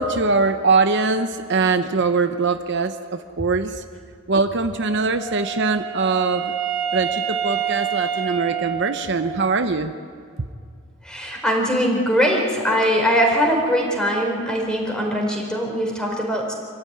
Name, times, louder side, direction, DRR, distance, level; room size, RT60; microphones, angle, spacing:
voice 1, 0.0-3.8 4.3-6.5 6.9-9.9, right 4 dB, 55° right, 8 dB, 0.8 m, -22 dB
Wind instrument woodwind instrument, 4.8-9.6, right 8 dB, 75° right, 2.2 m, -28 dB
voice 2, 11.0-16.5, equal, 5° left, 0 dB, 4.4 m, -21 dB
26.5 x 15.0 x 9.5 m, 2.2 s
head